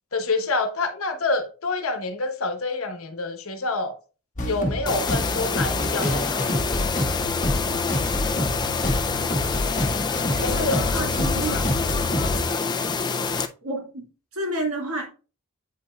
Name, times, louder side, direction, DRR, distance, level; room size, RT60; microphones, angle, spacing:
voice 1, 0.1-3.9 4.4-6.4 10.4-11.0 11.5-11.6, left 3 dB, 70° left, 1.0 m, -27 dB
sound 1, 4.4-12.4, left 1 dB, 35° left, 1.3 m, -27 dB
sound 2, 4.9-13.5, left 4 dB, 20° left, 0.3 m, -26 dB
voice 2, 10.3-11.7 13.6-14.0 14.3-15.1, right 1 dB, 75° right, 1.8 m, -30 dB
8.2 x 5.3 x 2.3 m
head